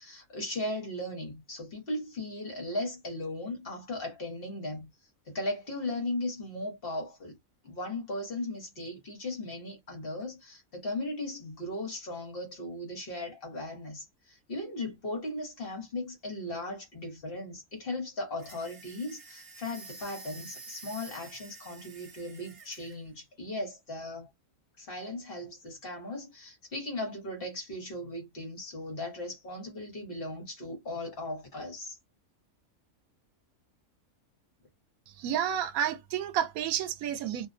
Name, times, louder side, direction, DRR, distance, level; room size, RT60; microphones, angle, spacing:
voice 1, 0.0-4.9 5.3-7.3 7.6-24.3 24.8-32.0, left 1 dB, 45° left, 1.1 m, -37 dB
sound 1, 18.4-23.0, right 3 dB, 55° right, 1.1 m, -49 dB
voice 2, 35.1-37.5, right 10 dB, 90° right, 1.0 m, -30 dB
2.6 x 2.0 x 2.5 m
omnidirectional pair, 1.4 m